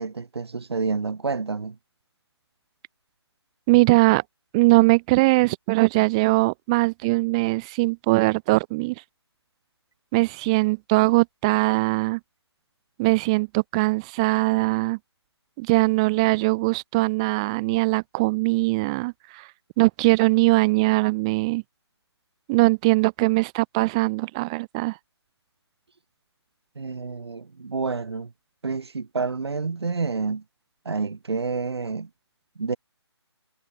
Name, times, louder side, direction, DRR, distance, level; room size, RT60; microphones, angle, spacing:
voice 1, 0.0-1.8 26.8-28.3 28.6-30.4 30.9-32.1 32.6-32.8, right 4 dB, 65° right, 2.1 m, -29 dB
voice 2, 3.7-4.2 4.5-8.9 10.1-12.2 13.0-15.0 15.6-19.5 19.8-21.6 22.5-25.0, right 24 dB, 15° right, 0.5 m, -21 dB
figure-of-eight pair, 150°, 14 cm